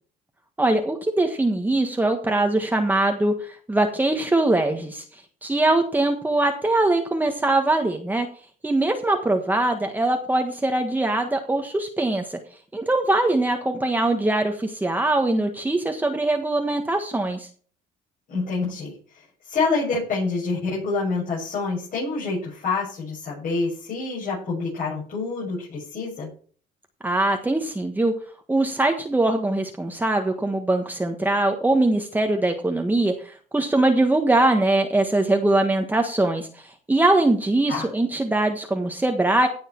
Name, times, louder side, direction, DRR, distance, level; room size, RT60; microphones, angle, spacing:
voice 1, 0.6-8.3 8.6-12.4 12.7-17.5 27.0-28.1 28.5-39.5, right 2 dB, 10° right, 4 dB, 1.4 m, -22 dB
voice 2, 18.3-26.3 37.7-37.9, left 4 dB, 55° left, -5 dB, 7.7 m, -27 dB
16.5 x 6.6 x 4.5 m, 0.43 s
cardioid pair, 110°, 17 cm